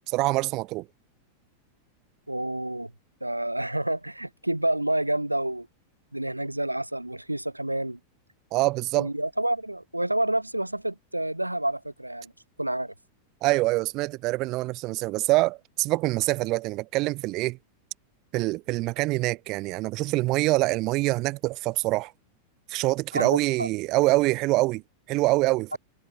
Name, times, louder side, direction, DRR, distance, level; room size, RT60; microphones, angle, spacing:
voice 1, 0.1-0.9 8.5-9.1 13.4-17.6 18.3-22.1 22.7-24.8 25.1-25.8, right 21 dB, 40° right, 0.4 m, -25 dB
voice 2, 2.3-2.9 3.2-5.7 6.1-8.0 9.0-12.3 12.6-12.9 23.1-23.7 25.7-25.8, right 1 dB, 85° right, 0.7 m, -29 dB
figure-of-eight pair, 90°, 0 cm